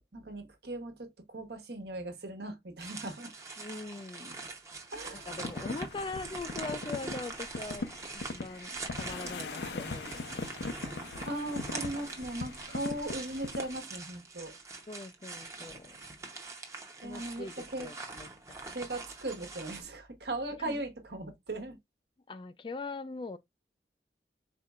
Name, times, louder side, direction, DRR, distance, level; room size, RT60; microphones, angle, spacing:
voice 1, 0.0-3.3 4.9-5.3 11.3-14.6 17.0-17.9 18.7-21.8, right 1 dB, 70° right, 1.1 m, -38 dB
sound 1, 2.8-19.8, right 3 dB, 15° right, 0.7 m, -43 dB
voice 2, 3.6-4.4 5.1-7.9 8.1-11.0 14.9-16.0 17.0-18.6 20.6-20.8 22.3-23.4, left 3 dB, 30° left, 0.3 m, -42 dB
sound 2, 5.4-13.8, left 3 dB, 80° left, 0.6 m, -40 dB
4.3 x 4.1 x 2.3 m
head